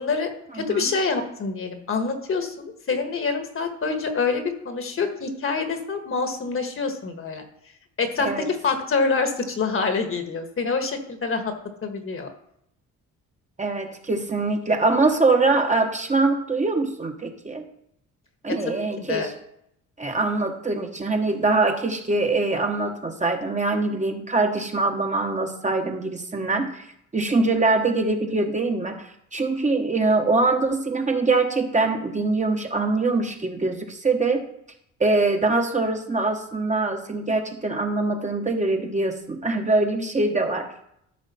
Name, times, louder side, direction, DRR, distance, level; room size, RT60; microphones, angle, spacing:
voice 1, 0.0-7.4 8.0-11.5 11.8-12.3 18.6-19.3, left 4 dB, 45° left, 6 dB, 1.4 m, -26 dB
voice 2, 13.6-17.7 18.4-19.3 20.0-26.9 27.1-34.4 35.0-40.7, right 3 dB, 25° right, 4 dB, 1.1 m, -23 dB
13.0 x 4.8 x 4.2 m, 0.74 s
cardioid pair, 90°, 30 cm